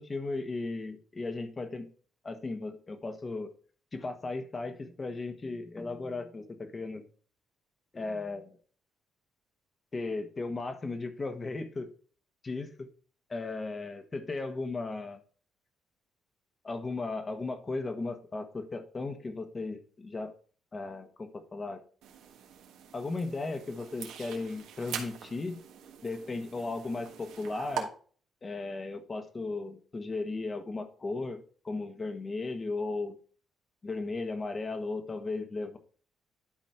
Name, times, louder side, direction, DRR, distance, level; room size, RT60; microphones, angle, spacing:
voice 1, 0.0-1.9 2.2-3.5 3.9-7.0 7.9-8.6 9.9-11.9 12.4-12.9 13.3-15.2 16.6-20.3 20.7-21.8 22.9-25.6 26.0-27.9 28.4-33.1 33.8-35.8, left 3 dB, 30° left, 8 dB, 1.4 m, -36 dB
sound 1, 22.0-27.8, right 9 dB, 90° right, 1.5 m, -43 dB
11.5 x 4.1 x 4.5 m, 0.43 s
cardioid pair, 90°, 0 cm